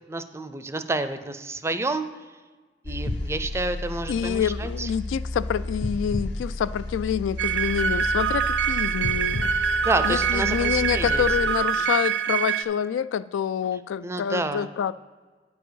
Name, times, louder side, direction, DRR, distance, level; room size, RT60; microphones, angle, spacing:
voice 1, 0.1-2.0 2.8-4.9 9.8-11.2 14.0-14.7, right 2 dB, 15° right, 10 dB, 0.4 m, -29 dB
sound 1, 2.8-11.5, left 2 dB, 65° left, 0.7 m, -32 dB
voice 2, 4.1-9.6 10.0-14.9, left 8 dB, 90° left, 18 dB, 0.3 m, -27 dB
sound 2, 7.4-12.6, right 7 dB, 75° right, 0.5 m, -25 dB
9.8 x 4.8 x 6.3 m, 1.4 s
head